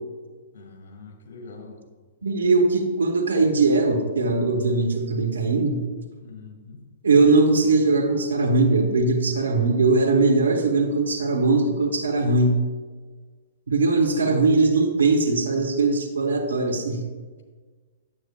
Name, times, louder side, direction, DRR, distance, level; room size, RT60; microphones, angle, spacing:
voice 1, 0.5-1.8 6.2-6.8, left 4 dB, 60° left, 2 dB, 1.7 m, -43 dB
voice 2, 2.2-5.8 7.0-12.6 13.7-17.0, right 3 dB, 80° right, 4 dB, 1.1 m, -20 dB
9.8 x 7.8 x 2.4 m, 1.4 s
figure-of-eight pair, 115°, 0 cm